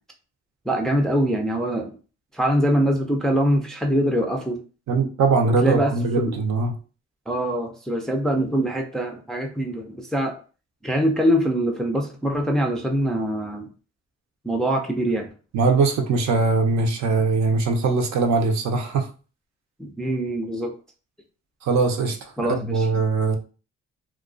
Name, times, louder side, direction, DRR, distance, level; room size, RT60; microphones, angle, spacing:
voice 1, 0.7-1.9 2.3-4.6 5.4-6.3 7.3-10.4 10.8-13.7 14.4-15.3 19.8-20.7 22.4-23.1, equal, ahead, 2 dB, 0.4 m, -23 dB
voice 2, 4.9-6.7 15.5-19.1 21.6-23.4, right 4 dB, 65° right, 4 dB, 0.6 m, -21 dB
2.3 x 2.2 x 2.4 m, 0.36 s
cardioid pair, 90°, 30 cm